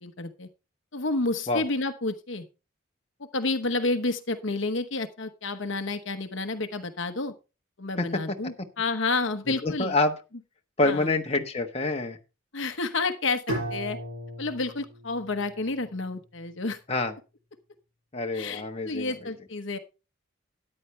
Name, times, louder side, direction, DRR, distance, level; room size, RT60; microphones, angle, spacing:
voice 1, 0.0-0.5 0.9-2.4 3.2-7.3 7.8-9.9 10.8-11.1 12.5-14.0 14.4-16.8 18.3-19.8, left 3 dB, 65° left, 8 dB, 1.1 m, -30 dB
voice 2, 8.0-8.4 9.5-10.1 10.8-12.2 16.9-17.1 18.1-19.1, left 2 dB, 30° left, 3 dB, 1.2 m, -27 dB
Bowed string instrument, 13.5-16.5, right 1 dB, 80° right, 7.6 m, -37 dB
13.5 x 9.9 x 3.2 m, 0.30 s
head